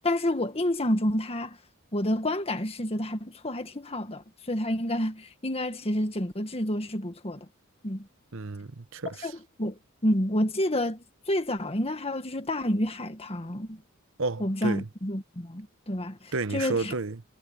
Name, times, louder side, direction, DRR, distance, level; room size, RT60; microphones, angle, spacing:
voice 1, 0.0-1.6 1.9-7.5 7.8-8.1 9.2-9.3 9.6-13.8 14.4-16.9, left 1 dB, 30° left, 1.7 m, -29 dB
voice 2, 8.3-9.3 14.2-14.9 16.3-17.2, right 3 dB, 65° right, 1.1 m, -31 dB
head